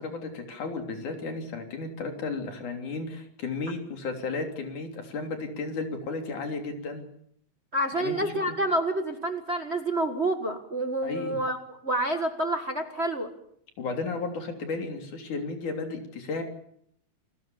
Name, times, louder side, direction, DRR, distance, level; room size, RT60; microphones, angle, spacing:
voice 1, 0.0-7.0 7.9-8.3 11.0-11.4 13.8-16.4, left 3 dB, 90° left, 5 dB, 4.9 m, -34 dB
voice 2, 7.7-13.3, right 1 dB, 30° right, 6 dB, 1.4 m, -28 dB
29.0 x 20.5 x 7.1 m, 0.69 s
omnidirectional pair, 3.4 m